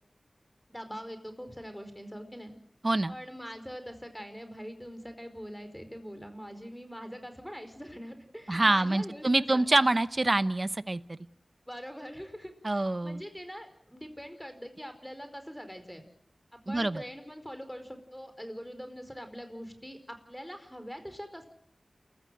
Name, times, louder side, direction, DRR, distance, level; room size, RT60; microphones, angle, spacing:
voice 1, 0.7-2.5 3.1-9.6 11.7-16.0 16.5-21.5, equal, 5° left, 8 dB, 4.8 m, -43 dB
voice 2, 2.8-3.1 8.5-11.2 12.6-13.2 16.7-17.0, right 2 dB, 45° right, 14 dB, 0.9 m, -26 dB
29.0 x 15.0 x 7.8 m, 0.69 s
wide cardioid pair, 45°, 0 cm